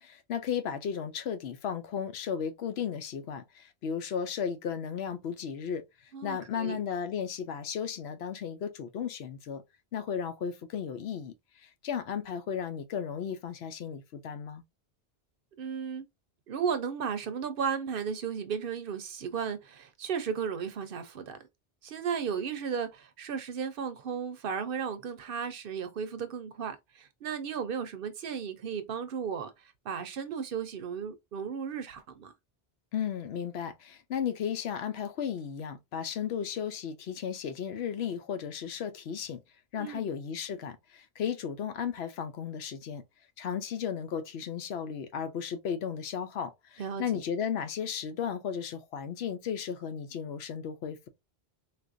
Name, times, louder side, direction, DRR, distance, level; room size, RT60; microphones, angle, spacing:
voice 1, 0.0-9.6 9.9-14.6 32.9-39.4 39.7-43.0 43.4-51.1, left 7 dB, 85° left, 0.9 m, -35 dB
voice 2, 6.1-6.8 15.6-16.1 16.5-21.4 21.8-32.3 39.7-40.0 46.8-47.0, right 7 dB, 65° right, 0.8 m, -35 dB
3.7 x 2.5 x 2.5 m
omnidirectional pair, 1.1 m